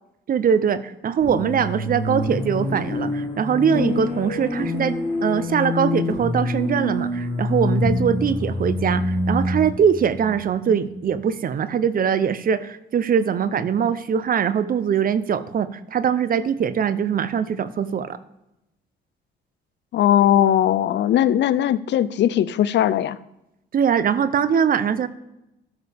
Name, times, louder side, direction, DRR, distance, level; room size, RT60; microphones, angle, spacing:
voice 1, 0.3-18.2 23.7-25.1, right 7 dB, 45° right, 15 dB, 0.6 m, -22 dB
sound 1, 1.2-11.1, left 2 dB, 35° left, 3.6 m, -26 dB
voice 2, 19.9-23.2, left 11 dB, 65° left, 17 dB, 0.5 m, -19 dB
12.5 x 6.7 x 3.4 m, 0.88 s
cardioid pair, 90°, 20 cm